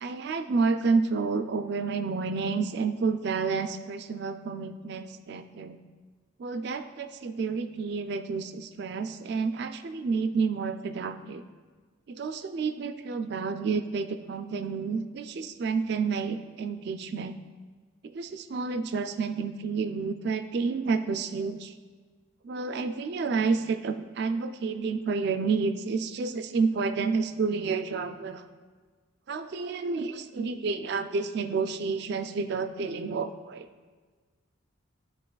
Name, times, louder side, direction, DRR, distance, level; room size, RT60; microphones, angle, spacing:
voice 1, 0.0-5.8 6.4-11.4 12.1-17.3 18.0-21.7 22.4-28.4 29.3-33.7, right 4 dB, 55° right, 10 dB, 0.3 m, -30 dB
11.5 x 3.9 x 2.3 m, 1.5 s
head